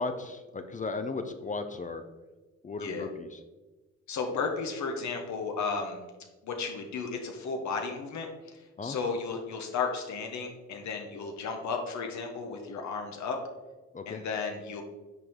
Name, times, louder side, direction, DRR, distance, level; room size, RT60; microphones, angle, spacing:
voice 1, 0.0-2.0 2.6-3.4 8.8-9.0 13.9-14.2, left 3 dB, 25° left, 8 dB, 0.6 m, -35 dB
voice 2, 4.1-6.0 6.4-8.3 8.8-13.4 14.1-14.8, left 5 dB, 65° left, 3 dB, 1.1 m, -34 dB
8.1 x 4.5 x 3.7 m, 1.2 s
cardioid pair, 90°, 30 cm